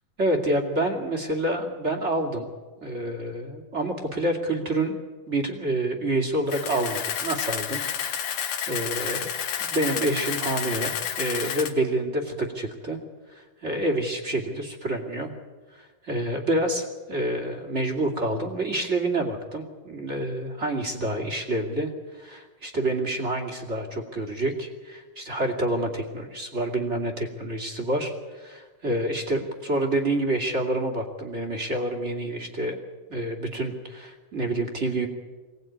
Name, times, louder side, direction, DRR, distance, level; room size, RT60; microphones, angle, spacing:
voice 1, 0.2-2.5 2.8-5.0 5.3-9.3 9.6-13.0 13.3-15.3 15.7-21.9 22.2-32.8 33.1-35.1, right 1 dB, 20° right, 2 dB, 2.4 m, -28 dB
Camera, 6.5-11.7, left 8 dB, 65° left, 2.9 m, -30 dB
24.0 x 18.5 x 9.4 m, 1.4 s
omnidirectional pair, 4.0 m